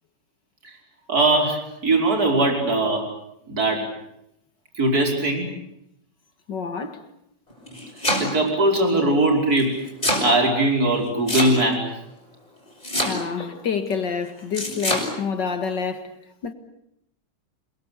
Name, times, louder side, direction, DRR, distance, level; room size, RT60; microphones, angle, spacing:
voice 1, 1.1-3.1 3.5-3.9 4.8-5.5 8.2-9.8 10.2-11.9, right 2 dB, 45° right, 5.7 m, -20 dB
voice 2, 6.5-7.1 13.0-16.1 16.4-16.5, left 6 dB, 60° left, 2.4 m, -28 dB
Domestic sounds home sounds, 7.5-8.5 9.6-10.3 11.3-11.9 12.8-13.5 14.5-15.1, left 1 dB, 20° left, 6.8 m, -24 dB
28.5 x 22.0 x 8.5 m
omnidirectional pair, 2.2 m